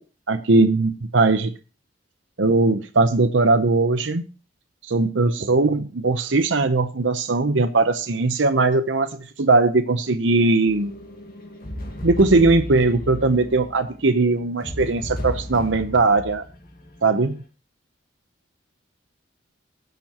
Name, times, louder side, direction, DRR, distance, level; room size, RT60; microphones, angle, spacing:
voice 1, 0.3-1.5 2.4-4.2 4.9-11.0 12.0-16.4 17.0-17.3, right 3 dB, 70° right, 8 dB, 0.8 m, -19 dB
sound 1, 10.6-17.4, left 1 dB, 50° left, 2.1 m, -35 dB
19.0 x 6.9 x 3.0 m, 0.35 s
head